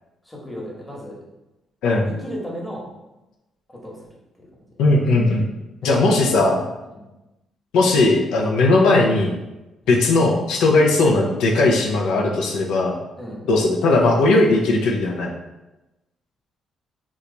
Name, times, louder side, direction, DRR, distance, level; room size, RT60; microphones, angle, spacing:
voice 1, 0.2-1.2 2.0-2.9 3.7-4.0 5.9-6.2 6.9-7.0 9.8-10.0 13.2-13.4, equal, 10° left, -4 dB, 1.0 m, -34 dB
voice 2, 4.8-5.5 5.8-6.6 7.7-9.3 9.9-13.0 13.5-15.3, left 2 dB, 90° left, -1 dB, 0.4 m, -18 dB
2.9 x 2.2 x 3.8 m, 1.0 s
cardioid pair, 90°, 0 cm